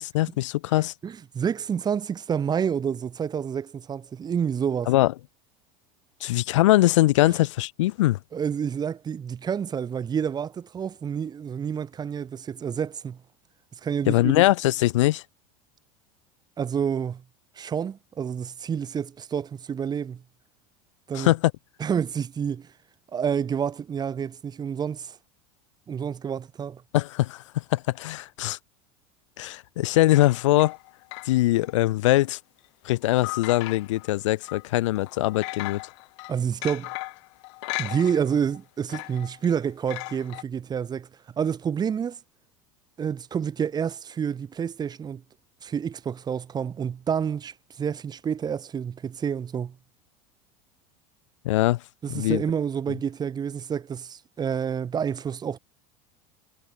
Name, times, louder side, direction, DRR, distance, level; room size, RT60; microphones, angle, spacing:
voice 1, 0.0-0.9 4.9-5.1 6.2-8.2 14.1-15.2 21.1-21.4 26.9-28.6 29.4-30.7 31.2-32.4 32.8-35.8 51.4-51.8 52.1-52.4, left 17 dB, 90° left, 1.0 m, -22 dB
voice 2, 1.0-4.9 8.3-13.2 13.8-14.4 16.6-17.2 17.6-20.2 21.1-21.3 21.8-22.7 23.1-25.2 25.9-26.8 36.3-36.9 37.8-41.1 41.4-42.2 43.0-45.2 45.6-49.8 52.0-55.6, right 7 dB, 25° right, 2.3 m, -28 dB
sound 1, 30.1-31.8 32.1-32.2 33.2-34.1 34.4-34.6 35.0-38.6 38.9-40.4, left 26 dB, 75° left, 2.1 m, -37 dB
supercardioid pair, 120°, 15 cm